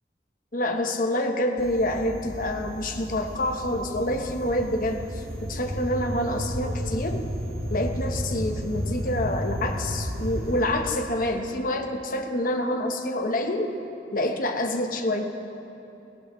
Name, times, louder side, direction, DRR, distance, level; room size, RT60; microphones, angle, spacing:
voice 1, 0.5-7.3 7.7-13.8 14.1-15.3, left 1 dB, 50° left, 4 dB, 1.2 m, -27 dB
sound 1, 1.6-10.6, equal, 55° right, 2.0 m, -32 dB
18.5 x 18.0 x 3.2 m, 2.9 s
head